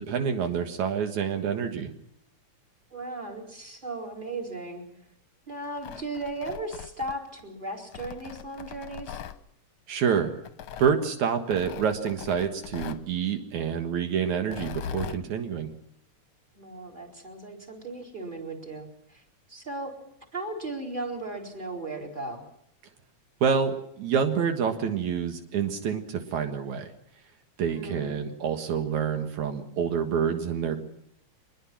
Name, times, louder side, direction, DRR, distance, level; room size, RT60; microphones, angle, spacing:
voice 1, 0.0-1.9 9.9-10.3 10.8-15.7 23.4-26.9 27.6-30.8, right 7 dB, 80° right, 5 dB, 3.0 m, -27 dB
voice 2, 2.9-4.8 5.5-9.2 16.5-19.2 19.5-19.9 20.3-22.4 27.7-28.2, right 2 dB, 15° right, 4 dB, 4.3 m, -36 dB
Tearing, 5.6-7.4 7.9-9.4 10.5-11.0 11.5-13.1 14.4-15.2, left 8 dB, 65° left, 1.8 m, -40 dB
24.0 x 21.5 x 6.0 m, 0.74 s
omnidirectional pair, 3.3 m